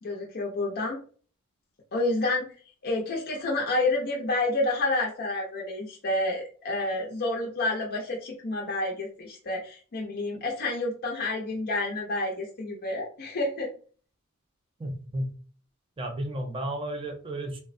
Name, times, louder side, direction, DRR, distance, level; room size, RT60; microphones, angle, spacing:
voice 1, 0.0-1.0 1.9-2.4 2.8-13.7, left 2 dB, 45° left, -1 dB, 0.5 m, -29 dB
voice 2, 14.8-15.3 16.0-17.6, right 1 dB, 25° right, 4 dB, 0.4 m, -33 dB
3.3 x 2.1 x 2.5 m, 0.42 s
head